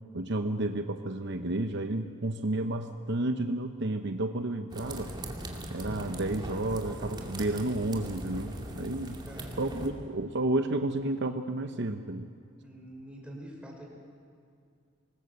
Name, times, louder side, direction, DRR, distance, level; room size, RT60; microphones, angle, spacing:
voice 1, 0.1-5.1 5.7-9.2 9.6-12.3, right 2 dB, 60° right, 7 dB, 0.9 m, -31 dB
sound 1, 4.7-9.9, right 1 dB, 20° right, 2.3 m, -40 dB
voice 2, 9.2-9.9 12.6-13.8, equal, 5° right, -1 dB, 5.0 m, -45 dB
25.5 x 19.5 x 8.0 m, 2.4 s
head